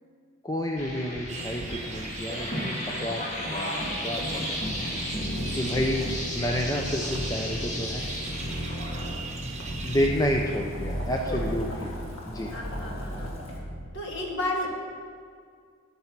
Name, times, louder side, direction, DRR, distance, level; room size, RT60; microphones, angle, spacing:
voice 1, 0.4-3.2 3.5-4.7 5.6-6.1 6.3-8.1 9.8-12.0 12.2-12.5, equal, 15° left, 0 dB, 0.5 m, -30 dB
sound 1, 0.8-13.9, equal, 35° left, 1.7 m, -34 dB
sound 2, 1.3-10.1, right 4 dB, 30° right, 0.9 m, -41 dB
Boiling, 4.2-13.6, equal, 70° left, 1.9 m, -41 dB
voice 2, 12.5-13.3 13.9-14.8, left 1 dB, 55° left, 0 dB, 1.7 m, -32 dB
13.0 x 5.5 x 6.0 m, 2.1 s
head